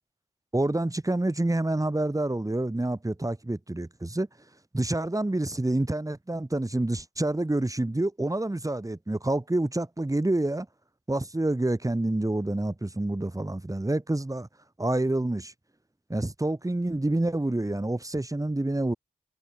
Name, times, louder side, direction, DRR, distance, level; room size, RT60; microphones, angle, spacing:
voice 1, 0.5-4.3 4.7-10.7 11.1-14.5 14.8-15.5 16.1-18.9, right 1 dB, 20° right, 7.5 m, -27 dB
cardioid pair, 60°, 17 cm